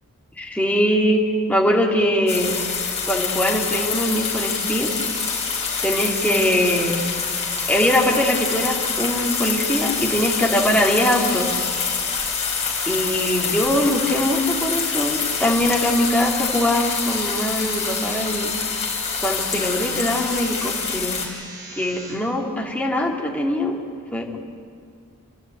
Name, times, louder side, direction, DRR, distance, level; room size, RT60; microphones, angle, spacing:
voice 1, 0.4-2.5 3.1-4.9 5.8-7.0 7.7-11.6 12.8-18.5 19.2-21.2 21.7-23.8 24.1-24.4, equal, 5° left, -2 dB, 2.7 m, -22 dB
sound 1, 2.3-21.3, left 6 dB, 30° left, 3.8 m, -26 dB
sound 2, 3.9-22.2, right 2 dB, 55° right, 7.1 m, -39 dB
27.5 x 12.5 x 9.2 m, 2.2 s
head